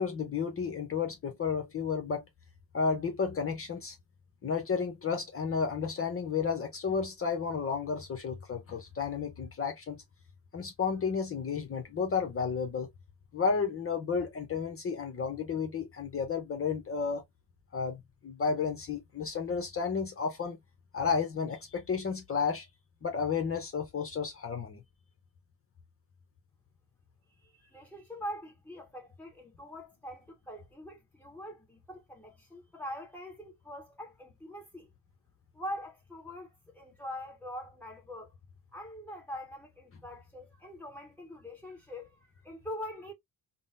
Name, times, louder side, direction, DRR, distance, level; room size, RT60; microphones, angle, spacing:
voice 1, 0.0-2.2 2.7-4.0 4.4-10.0 10.5-12.9 13.3-17.2 17.7-20.6 20.9-22.6 23.0-24.8, left 5 dB, 30° left, 0.7 m, -32 dB
voice 2, 27.4-34.9 35.5-38.3 38.7-43.1, equal, 5° left, 1.3 m, -43 dB
3.7 x 2.0 x 2.4 m
cardioid pair, 110°, 44 cm